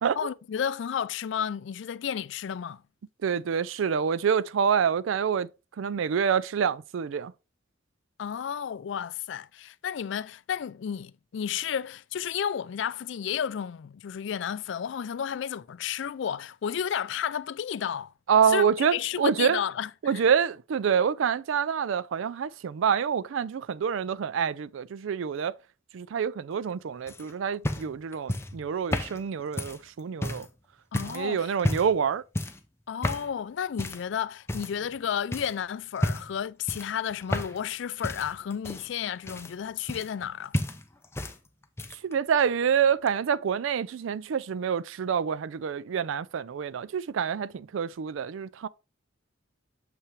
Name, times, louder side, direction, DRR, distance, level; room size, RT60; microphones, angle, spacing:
voice 1, 0.2-2.8 8.2-18.1 18.5-20.2 30.9-31.5 32.9-40.5, left 8 dB, 65° left, 0.3 m, -32 dB
voice 2, 3.2-5.5 5.8-7.3 18.3-19.6 20.0-25.6 25.9-30.5 31.0-32.2 42.0-48.7, right 7 dB, 75° right, 0.4 m, -27 dB
sound 1, 27.1-30.5 30.9-31.2 31.6-32.0 32.3-32.7 33.0-33.3 33.8-34.1 34.5-35.0 35.3-35.5 36.0-36.4 36.7-37.7 38.0-40.3 40.5-41.4 41.6-42.1 43.1-43.2, left 1 dB, 15° left, 0.6 m, -32 dB
7.0 x 5.6 x 3.1 m
head